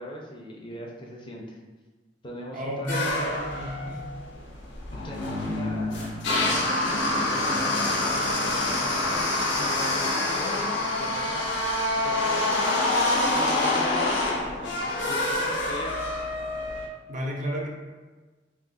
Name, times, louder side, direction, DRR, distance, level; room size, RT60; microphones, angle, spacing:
voice 1, 0.0-1.6 2.2-3.2 4.9-12.9 13.3-16.0, left 1 dB, 30° left, -2 dB, 0.5 m, -40 dB
voice 2, 2.5-4.1 17.1-17.7, right 1 dB, 45° right, -1 dB, 0.5 m, -32 dB
sound 1, 2.9-16.9, left 2 dB, 75° left, 0.6 m, -26 dB
2.9 x 2.5 x 3.8 m, 1.3 s
head